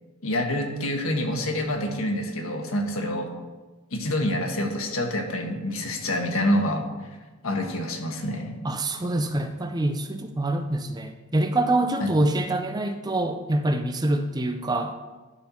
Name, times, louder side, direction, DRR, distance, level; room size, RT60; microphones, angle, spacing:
voice 1, 0.2-3.3 3.9-6.8 7.4-8.5 12.0-12.1, left 1 dB, 75° left, 2 dB, 1.5 m, -27 dB
voice 2, 8.6-14.9, right 1 dB, 20° right, 7 dB, 0.5 m, -25 dB
12.0 x 4.5 x 5.7 m, 1.2 s
head